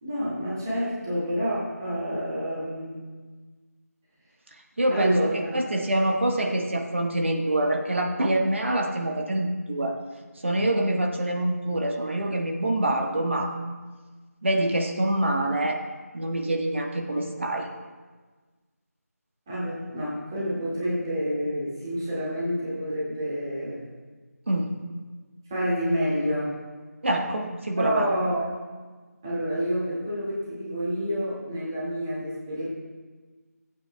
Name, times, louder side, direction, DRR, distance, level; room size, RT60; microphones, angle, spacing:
voice 1, 0.0-3.1 4.9-5.7 19.5-23.9 25.5-26.5 27.7-28.6 29.2-32.6, equal, 15° right, -8 dB, 2.0 m, -28 dB
voice 2, 4.8-9.9 10.4-13.6 14.4-15.8 16.1-17.7 24.5-24.8 27.0-28.1, right 1 dB, 45° right, 2 dB, 1.3 m, -25 dB
26.0 x 8.8 x 2.3 m, 1.4 s
figure-of-eight pair, 170°, 9 cm